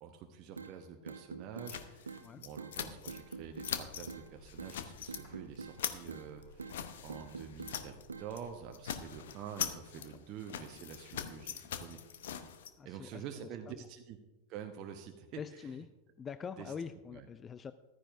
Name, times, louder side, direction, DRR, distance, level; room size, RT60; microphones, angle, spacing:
voice 1, 0.0-12.0 12.8-14.2 14.5-15.8 16.6-16.7 17.1-17.3, right 8 dB, 40° right, 4 dB, 0.9 m, -47 dB
sound 1, 0.6-0.7 1.1-1.7 2.1-2.2 2.6-2.7 3.1-3.7 4.1-4.3 4.6-4.7 5.1-5.8 6.1-6.3 6.6-6.8 7.1-7.8 8.1-8.3, right 5 dB, 75° right, 0.8 m, -45 dB
sound 2, 1.7-3.4 3.6-4.1 4.5-5.2 5.6-8.1 8.3-8.5 8.7-12.7, left 9 dB, 60° left, 0.8 m, -42 dB
sound 3, 3.0-9.2, left 2 dB, 45° left, 4.6 m, -59 dB
voice 2, 12.8-13.9 15.4-15.9 16.2-17.7, left 6 dB, 20° left, 13 dB, 0.4 m, -44 dB
14.5 x 13.0 x 2.6 m, 1.1 s
figure-of-eight pair, 90°, 0 cm